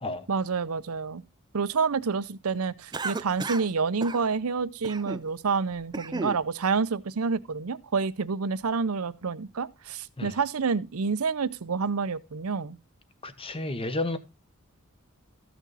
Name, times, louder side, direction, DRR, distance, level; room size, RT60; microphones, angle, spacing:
voice 1, 0.3-1.2 1.5-12.8, right 5 dB, 70° right, 0.6 m, -28 dB
Cough, 2.9-3.7 4.0-4.2 4.8-5.3 5.7-6.4, right 3 dB, 20° right, 0.4 m, -34 dB
voice 2, 13.2-14.2, left 2 dB, 25° left, 1.1 m, -31 dB
14.0 x 6.1 x 4.1 m
head